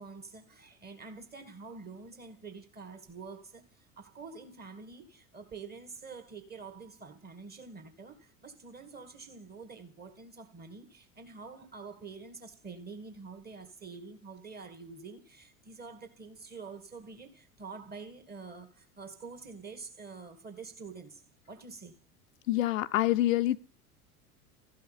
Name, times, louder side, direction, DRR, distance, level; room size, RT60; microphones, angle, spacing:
voice 1, 0.0-21.2 21.5-22.0, right 4 dB, 20° right, 1.8 m, -47 dB
voice 2, 22.5-23.6, left 14 dB, 65° left, 0.6 m, -26 dB
13.0 x 5.7 x 8.6 m
figure-of-eight pair, 80°, 44 cm